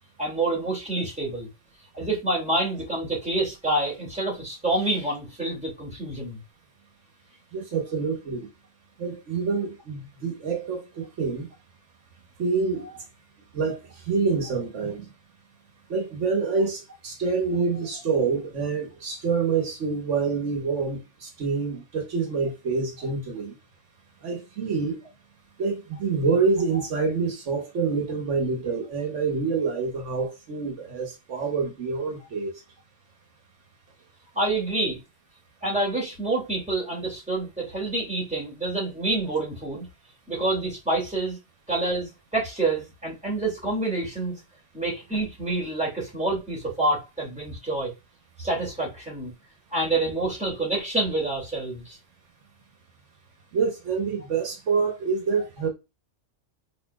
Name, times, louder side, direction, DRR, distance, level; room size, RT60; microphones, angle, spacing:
voice 1, 0.2-1.5 1.9-6.4 34.4-35.0 35.6-39.9 40.3-41.4 41.7-44.4 44.7-47.9 48.4-49.3 49.7-52.0, right 2 dB, 5° right, 2.3 m, -27 dB
voice 2, 7.5-8.5 9.0-11.5 12.4-12.9 13.5-15.1 15.9-23.5 24.2-25.0 25.6-32.5 53.5-55.7, right 4 dB, 80° right, 1.3 m, -27 dB
5.0 x 4.2 x 2.3 m
omnidirectional pair, 1.2 m